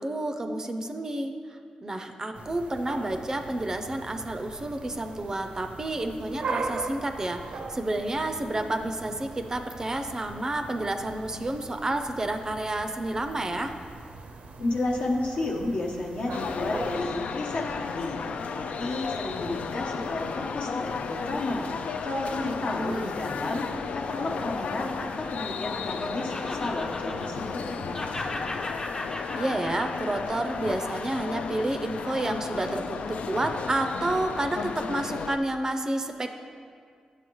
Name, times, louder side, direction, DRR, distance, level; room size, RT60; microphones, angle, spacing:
voice 1, 0.0-1.3 1.8-7.4 7.7-13.7 22.4-23.1 29.4-36.3, right 1 dB, 30° right, 6 dB, 0.4 m, -30 dB
sound 1, 2.3-17.0, right 3 dB, 80° right, 0.6 m, -40 dB
voice 2, 14.6-21.7 22.0-28.4, left 2 dB, 65° left, -1 dB, 1.0 m, -32 dB
sound 2, 16.3-35.4, left 5 dB, 80° left, 0.3 m, -34 dB
Laughter, 23.7-27.7 27.9-32.4, left 2 dB, 30° left, 0.6 m, -38 dB
9.2 x 6.8 x 3.1 m, 2.2 s
wide cardioid pair, 120°, 2 cm